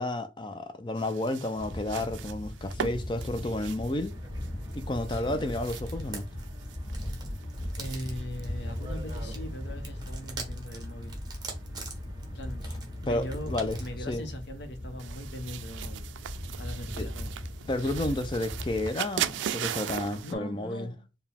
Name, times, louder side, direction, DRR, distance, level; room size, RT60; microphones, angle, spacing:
voice 1, 0.0-4.1 4.7-6.3 13.1-13.8 14.1-14.2 17.0-17.1 17.7-20.9, left 1 dB, 25° left, 0.4 m, -31 dB
sound 1, 1.0-20.3, right 9 dB, 90° right, 0.3 m, -41 dB
sound 2, 1.6-18.9, left 1 dB, 40° left, 0.8 m, -38 dB
sound 3, 4.1-14.0, right 4 dB, 20° right, 0.9 m, -46 dB
voice 2, 5.1-5.5 7.8-11.1 12.3-12.6 13.0-16.1 16.6-17.3 20.2-21.1, left 1 dB, 70° left, 0.8 m, -40 dB
4.7 x 2.2 x 3.4 m
head